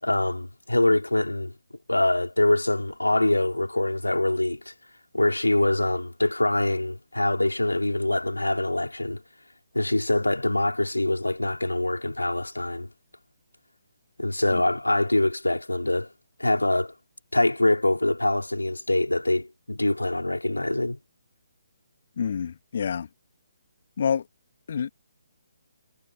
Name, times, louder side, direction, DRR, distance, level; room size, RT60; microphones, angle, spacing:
voice 1, 0.0-1.5 1.9-4.6 5.1-9.2 9.7-12.9 14.2-16.1 16.4-16.9 17.3-21.0, left 1 dB, 80° left, 4.6 m, -24 dB
voice 2, 22.2-23.1 24.0-24.2 24.7-24.9, left 7 dB, 45° left, 2.2 m, -27 dB
figure-of-eight pair, 140°, 0 cm